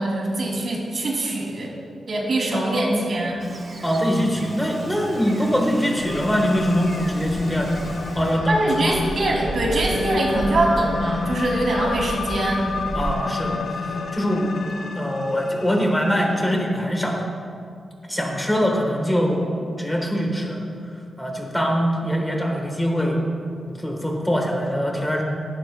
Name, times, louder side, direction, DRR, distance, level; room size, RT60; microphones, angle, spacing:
voice 1, 0.0-1.7 2.1-3.4 8.5-12.6, right 1 dB, 55° right, -2 dB, 2.7 m, -23 dB
voice 2, 2.5-3.0 3.8-8.9 12.9-13.6 14.1-14.6 15.0-17.2 18.1-20.6 21.2-23.2 23.8-25.2, equal, 10° left, 1 dB, 1.3 m, -23 dB
sound 1, 3.4-16.5, left 4 dB, 75° left, 0.6 m, -31 dB
Gull seagull, 3.4-8.4, right 2 dB, 40° right, 1.2 m, -41 dB
sound 2, 6.0-13.1, right 2 dB, 15° right, 0.5 m, -33 dB
16.5 x 11.5 x 2.2 m, 2.3 s
wide cardioid pair, 110°, 0 cm